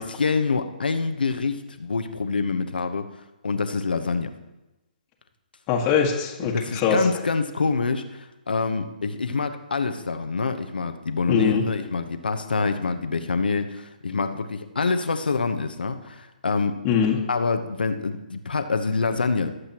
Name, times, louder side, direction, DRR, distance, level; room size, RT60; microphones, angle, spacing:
voice 1, 0.2-3.1 3.4-4.3 6.4-16.8 17.3-19.6, left 4 dB, 80° left, 7 dB, 1.1 m, -26 dB
voice 2, 5.7-7.0 11.3-11.7 16.8-17.3, left 7 dB, 25° left, 0 dB, 1.7 m, -22 dB
20.5 x 8.0 x 3.0 m, 1.0 s
hypercardioid pair, 140°, 5 cm